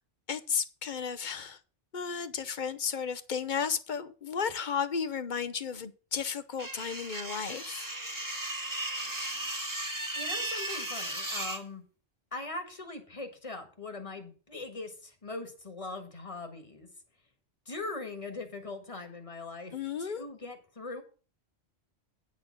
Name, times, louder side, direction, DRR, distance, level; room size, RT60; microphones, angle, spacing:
voice 1, 0.3-1.6 1.9-7.9 19.7-20.2, left 6 dB, 50° left, 0.8 m, -33 dB
sound 1, 6.6-11.6, right 1 dB, 20° right, 1.4 m, -36 dB
voice 2, 10.1-11.8 12.3-16.9 17.6-19.7 20.0-21.0, left 3 dB, 30° left, 1.6 m, -41 dB
9.3 x 4.4 x 7.4 m
omnidirectional pair, 1.1 m